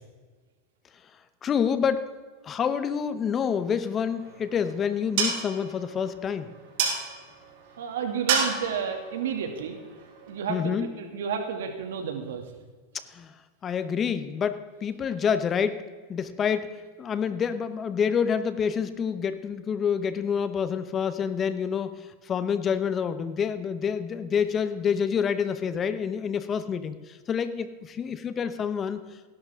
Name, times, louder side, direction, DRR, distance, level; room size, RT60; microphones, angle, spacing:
voice 1, 1.4-2.1 2.4-6.5 10.5-10.9 13.1-13.4 13.6-15.8 16.1-29.0, left 7 dB, 25° left, 12 dB, 0.9 m, -27 dB
sound 1, 4.0-10.4, right 5 dB, 65° right, 5.2 m, -32 dB
voice 2, 7.8-9.8 10.3-12.4, right 7 dB, 85° right, 4 dB, 2.4 m, -31 dB
18.0 x 11.5 x 3.7 m, 1.4 s
supercardioid pair, 130°, 0 cm